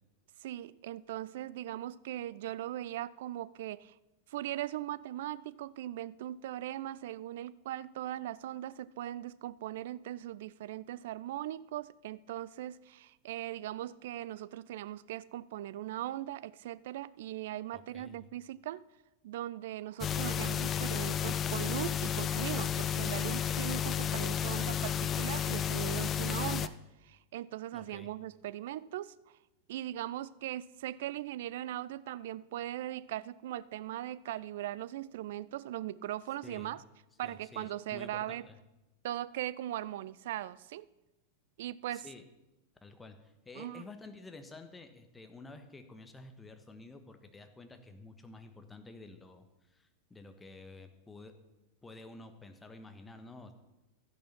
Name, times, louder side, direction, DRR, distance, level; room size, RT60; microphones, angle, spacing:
voice 1, 0.4-3.9 4.3-18.8 19.2-26.8 27.0-29.1 29.7-36.8 37.2-38.5 39.0-40.9 41.6-42.1 43.6-43.8, right 13 dB, 55° right, 0.4 m, -39 dB
voice 2, 17.7-18.2 27.7-28.1 36.4-36.8 37.2-38.6 41.9-42.2 42.8-49.4 49.7-51.3 51.8-53.5, left 3 dB, 10° left, 1.3 m, -51 dB
sound 1, 20.0-26.7, left 8 dB, 25° left, 0.5 m, -32 dB
13.0 x 10.5 x 5.7 m
figure-of-eight pair, 90°, 0 cm